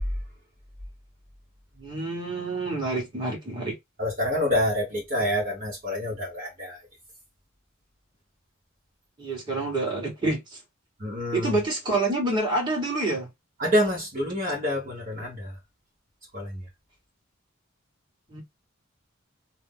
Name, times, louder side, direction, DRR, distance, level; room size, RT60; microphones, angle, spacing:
voice 1, 1.8-3.8 9.2-10.6 11.3-13.3 18.3-18.4, right 2 dB, 20° right, 1.4 m, -27 dB
voice 2, 4.0-6.8 11.0-11.6 13.6-15.6 16.3-16.6, left 1 dB, 40° right, 1.1 m, -27 dB
2.8 x 2.0 x 3.5 m
head